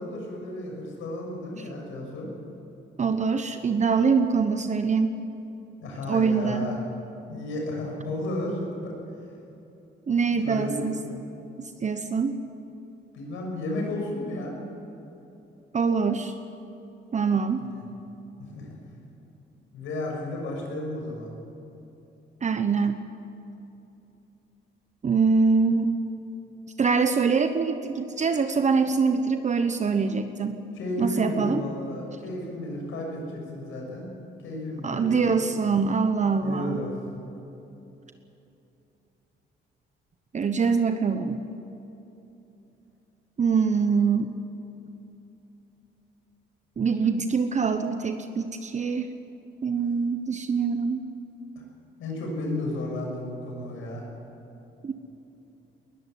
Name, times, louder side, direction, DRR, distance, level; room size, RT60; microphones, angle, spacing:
voice 1, 0.0-2.3 5.8-6.8 7.3-8.9 10.3-10.8 13.1-14.6 17.6-17.8 18.4-18.8 19.7-21.3 30.7-34.1 34.4-35.2 36.4-36.9 52.0-54.0, left 1 dB, 85° left, 0 dB, 6.4 m, -33 dB
voice 2, 3.0-5.2 6.1-6.7 10.1-11.0 11.8-12.4 15.7-16.3 17.1-17.6 22.4-23.0 25.0-26.0 26.8-30.6 31.0-31.6 34.8-36.8 40.3-41.4 43.4-44.3 46.8-49.1 49.6-51.0 54.8-54.9, right 5 dB, 35° right, 8 dB, 1.0 m, -24 dB
20.0 x 14.0 x 9.8 m, 2.9 s
cardioid pair, 90°, 20 cm